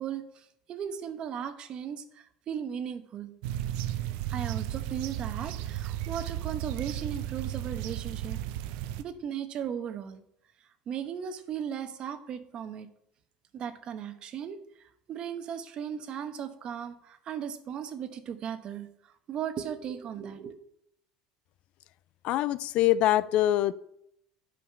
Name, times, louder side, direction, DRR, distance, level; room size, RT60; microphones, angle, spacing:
voice 1, 0.0-3.3 4.3-8.4 9.0-10.2 10.9-12.9 13.5-18.9 19.3-20.6, right 8 dB, 45° right, 9 dB, 1.0 m, -37 dB
sound 1, 3.4-9.0, right 13 dB, 75° right, 0.6 m, -34 dB
voice 2, 22.2-23.7, left 13 dB, 60° left, 17 dB, 0.4 m, -24 dB
8.7 x 5.1 x 5.9 m, 0.75 s
supercardioid pair, 110°, 2 cm